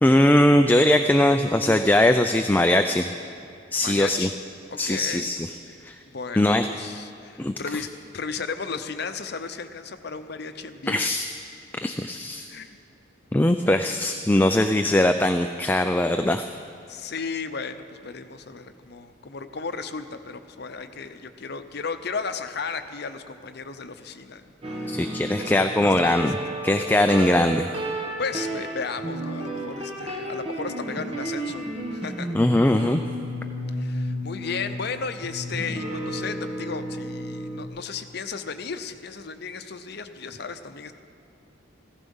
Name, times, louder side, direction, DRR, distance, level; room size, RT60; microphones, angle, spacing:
voice 1, 0.0-3.1 3.7-4.3 4.8-5.5 5.8-6.0 6.4-6.7 7.4-7.5 10.9-11.3 11.8-12.5 13.3-16.5 24.9-26.4 26.6-27.7 32.3-33.0, left 1 dB, 10° left, 7 dB, 0.3 m, -20 dB
voice 2, 3.8-4.3 4.7-5.3 6.1-11.1 12.5-12.7 16.9-26.3 28.2-31.6 31.9-32.3 33.8-40.9, left 5 dB, 55° left, 9 dB, 0.7 m, -34 dB
sound 1, 24.6-37.7, right 1 dB, 30° right, 1.3 m, -32 dB
15.5 x 14.0 x 5.5 m, 2.6 s
head